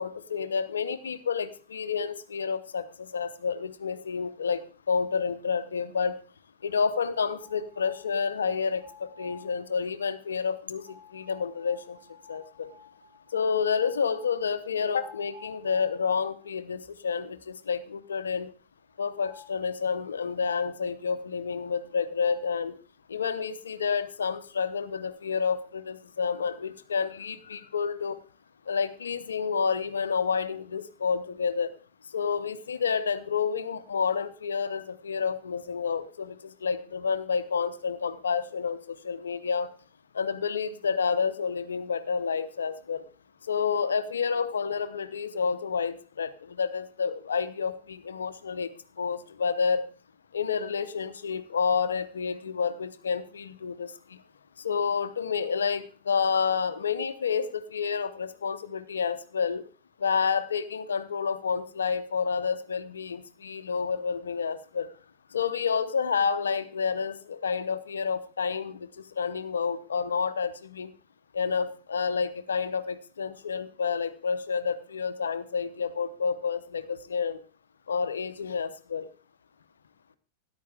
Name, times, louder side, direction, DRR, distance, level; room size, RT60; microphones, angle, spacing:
voice 1, 0.0-4.6 4.9-6.2 6.6-12.0 12.3-12.7 13.3-18.5 19.0-22.7 23.1-28.2 28.7-31.7 32.1-36.4 36.6-39.7 40.1-43.0 43.5-48.7 49.0-49.9 50.3-53.9 54.6-59.6 60.0-64.9 65.3-68.9 69.2-70.9 71.3-77.4 77.9-79.1, left 6 dB, 75° left, 13 dB, 0.8 m, -29 dB
sound 1, 7.1-8.2 8.6-9.6 10.8-16.4 16.8-16.9 17.3-17.4 19.0-19.6 21.8-21.9 22.2-22.6, left 2 dB, 40° right, 5.7 m, -53 dB
13.0 x 10.5 x 3.4 m, 0.38 s
figure-of-eight pair, 90°, 0 cm